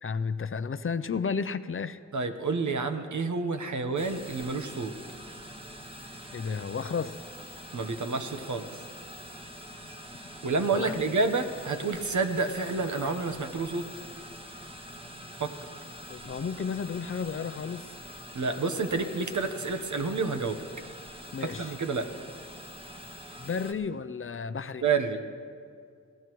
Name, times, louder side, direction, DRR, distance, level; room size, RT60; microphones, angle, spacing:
voice 1, 0.0-2.0 6.3-7.1 10.7-11.0 16.1-17.9 21.3-21.7 23.4-24.8, left 5 dB, 45° left, 13 dB, 0.5 m, -32 dB
voice 2, 2.1-4.9 7.7-8.8 10.4-13.9 15.4-15.5 18.3-20.6 21.4-22.1 24.8-25.2, right 4 dB, 75° right, 7 dB, 1.1 m, -29 dB
sound 1, 4.0-23.7, equal, 20° right, 1.4 m, -45 dB
27.0 x 17.0 x 3.1 m, 2.2 s
wide cardioid pair, 90°, 30 cm